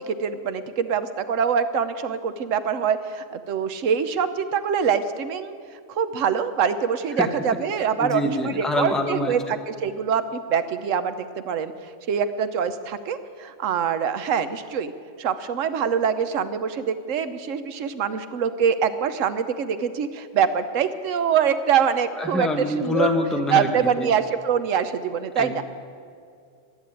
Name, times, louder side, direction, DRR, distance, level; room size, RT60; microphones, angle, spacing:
voice 1, 0.1-5.6 5.9-11.7 12.1-14.9 15.2-23.1 23.5-25.6, right 7 dB, 85° right, 11 dB, 1.1 m, -24 dB
voice 2, 8.0-9.3 22.2-24.1 25.4-25.6, left 2 dB, ahead, 4 dB, 0.9 m, -25 dB
11.5 x 11.0 x 8.9 m, 2.3 s
omnidirectional pair, 1.3 m